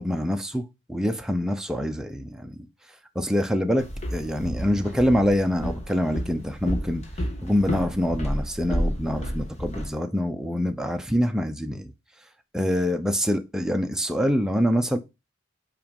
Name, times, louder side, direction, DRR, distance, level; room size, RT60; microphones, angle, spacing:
voice 1, 0.0-2.7 3.1-7.0 7.4-11.9 12.5-15.0, equal, 5° right, 0.7 m, -25 dB
Walk footsteps, 3.8-9.9, equal, 35° left, 1.4 m, -31 dB
5.6 x 5.0 x 5.3 m
head